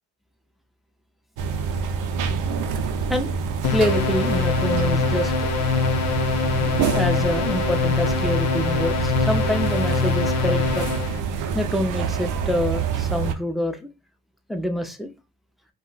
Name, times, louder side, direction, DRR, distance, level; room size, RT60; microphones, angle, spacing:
sound 1, 1.4-13.3, right 5 dB, 85° right, 0.5 m, -26 dB
sound 2, 3.6-11.2, left 5 dB, 60° left, 0.6 m, -24 dB
voice 1, 3.7-5.5 6.9-10.9 11.5-13.9 14.5-15.1, equal, ahead, 0.4 m, -26 dB
2.2 x 2.1 x 3.8 m
cardioid pair, 90°, 30 cm